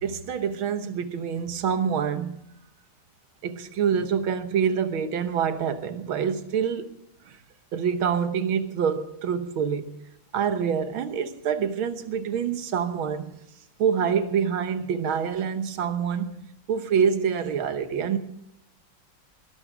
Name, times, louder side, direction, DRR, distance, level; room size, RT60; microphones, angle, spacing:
voice 1, 0.0-2.4 3.4-6.9 7.3-7.4 7.7-9.9 10.3-13.3 13.8-16.4 16.7-18.2, right 7 dB, 75° right, 1.8 m, -26 dB
20.5 x 12.0 x 5.0 m
omnidirectional pair, 2.3 m